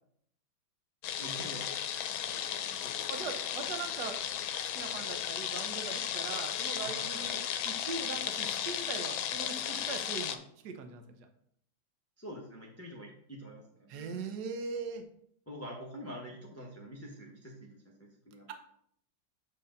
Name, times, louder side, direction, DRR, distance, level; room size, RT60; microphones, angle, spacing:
sound 1, 1.0-10.4, left 9 dB, 85° left, 1.4 m, -35 dB
voice 1, 1.2-1.7 2.3-2.4 2.8-2.9 6.8-7.2 12.2-14.3 15.5-18.5, equal, 10° left, -2 dB, 0.8 m, -46 dB
voice 2, 3.1-4.2 4.7-7.4 7.6-10.4 10.6-11.2 13.9-15.0, right 5 dB, 65° right, 6 dB, 1.3 m, -40 dB
7.7 x 6.7 x 2.6 m, 0.67 s
omnidirectional pair, 2.1 m